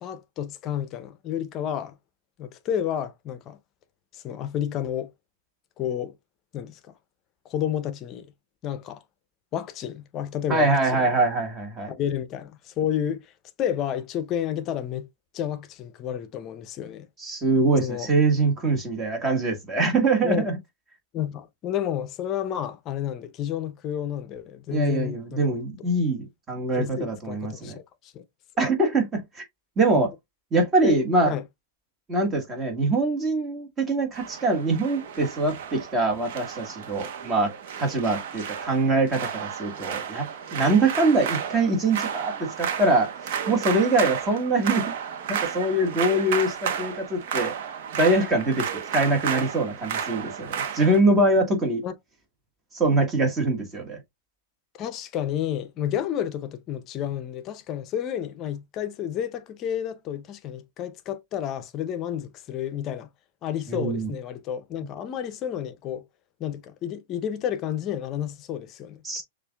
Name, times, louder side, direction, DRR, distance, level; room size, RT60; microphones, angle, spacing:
voice 1, 0.0-2.0 2.4-3.6 4.1-5.1 5.8-6.1 6.5-6.8 7.4-8.3 8.6-9.0 9.5-11.2 11.9-13.3 13.6-15.1 15.3-17.1 17.8-18.1 20.2-20.5 21.1-25.6 26.8-28.2 29.9-30.0 30.8-31.0 31.3-31.4 51.8-51.9 54.8-63.1 63.4-66.0 66.4-69.2, left 10 dB, 35° left, 0.6 m, -31 dB
voice 2, 10.5-11.9 17.2-20.6 24.7-27.8 28.6-29.5 29.8-30.1 30.5-31.3 32.1-37.5 37.8-44.9 45.3-47.5 48.0-51.8 52.7-54.0 63.7-64.1 69.0-69.2, right 2 dB, 20° right, 1.7 m, -23 dB
sound 1, 34.1-51.0, right 7 dB, 60° right, 0.9 m, -32 dB
6.6 x 2.5 x 2.2 m
hypercardioid pair, 120°, 0 cm